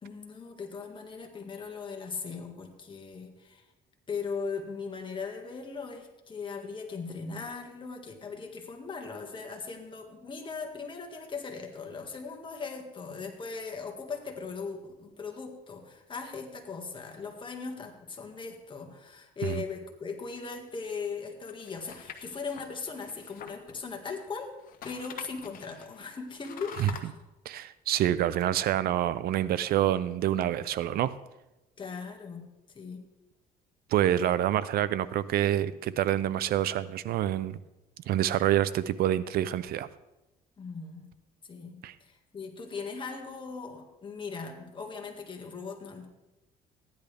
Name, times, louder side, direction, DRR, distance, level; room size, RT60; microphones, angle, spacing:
voice 1, 0.0-3.6 4.1-24.5 24.8-27.1 31.8-32.4 32.7-33.0 40.6-41.1 41.5-46.1, left 5 dB, 30° left, 3 dB, 1.8 m, -39 dB
sound 1, 21.5-24.3 24.6-27.0, left 7 dB, 60° left, 1.1 m, -46 dB
voice 2, 27.5-31.1 33.9-37.6 38.1-39.9 41.8-41.9, right 12 dB, 65° right, 16 dB, 0.5 m, -27 dB
15.0 x 10.5 x 3.4 m, 0.98 s
cardioid pair, 110°, 17 cm